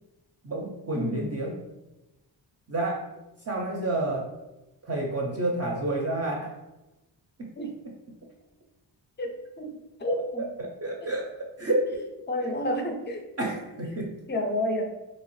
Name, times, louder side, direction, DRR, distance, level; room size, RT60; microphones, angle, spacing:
voice 1, 0.4-1.6 2.7-3.1 3.5-4.3 4.8-6.5 7.4-7.9 10.4-12.0 12.4-12.5 13.4-14.2, right 2 dB, 35° right, -1 dB, 0.4 m, -30 dB
voice 2, 0.9-1.4 7.6-7.7 9.2-10.4 12.3-13.2 14.3-14.8, left 1 dB, 25° left, 4 dB, 0.4 m, -30 dB
2.9 x 2.8 x 3.0 m, 0.99 s
wide cardioid pair, 140°, 46 cm